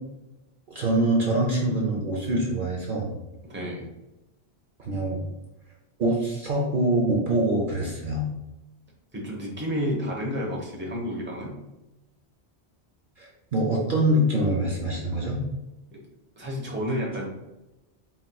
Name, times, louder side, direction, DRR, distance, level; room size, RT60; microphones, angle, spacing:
voice 1, 0.7-3.1 4.8-5.2 6.0-8.3 13.2-15.4, right 1 dB, 55° right, -1 dB, 0.8 m, -24 dB
voice 2, 3.4-3.9 9.1-11.6 15.9-16.0 16.4-17.3, equal, 10° right, -2 dB, 0.8 m, -30 dB
4.3 x 4.1 x 2.3 m, 1.0 s
omnidirectional pair, 1.1 m